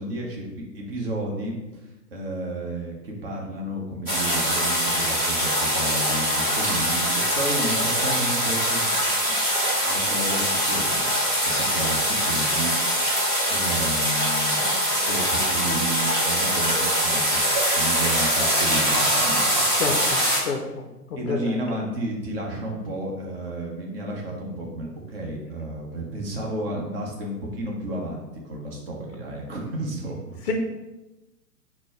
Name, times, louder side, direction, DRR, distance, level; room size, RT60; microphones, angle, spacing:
voice 1, 0.0-7.1 7.3-9.0 9.3-9.4 9.9-11.1 11.4-12.7 13.5-19.9 21.2-30.5, right 1 dB, 35° right, -1 dB, 0.9 m, -32 dB
sound 1, 4.1-20.4, equal, 10° right, 0.5 m, -23 dB
voice 2, 19.8-20.6 21.3-21.5 30.5-30.6, left 5 dB, 45° left, 2 dB, 0.5 m, -27 dB
4.2 x 2.2 x 4.3 m, 1.0 s
figure-of-eight pair, 115°, 48 cm